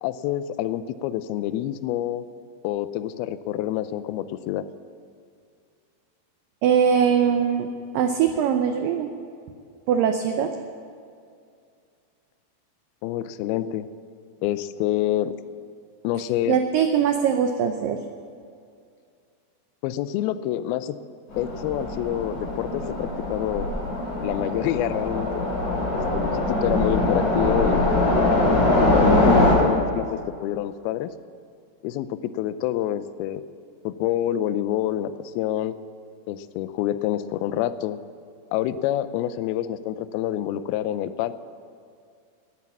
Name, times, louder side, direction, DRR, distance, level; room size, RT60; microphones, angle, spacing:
voice 1, 0.0-2.2 2.6-4.7 13.0-13.9 14.4-15.4 16.0-16.6 19.8-21.0 21.4-23.7 24.2-25.5 25.9-27.9 28.8-31.1 31.8-33.4 33.8-35.7 36.3-38.0 38.5-41.3, left 12 dB, 80° left, 13 dB, 2.2 m, -27 dB
voice 2, 6.6-7.7 7.9-9.1 9.9-10.5 16.5-18.0, right 7 dB, 85° right, 6 dB, 1.9 m, -21 dB
Train, 21.3-29.5, left 1 dB, 50° left, 4.8 m, -22 dB
19.5 x 9.0 x 7.3 m, 2.3 s
omnidirectional pair, 4.9 m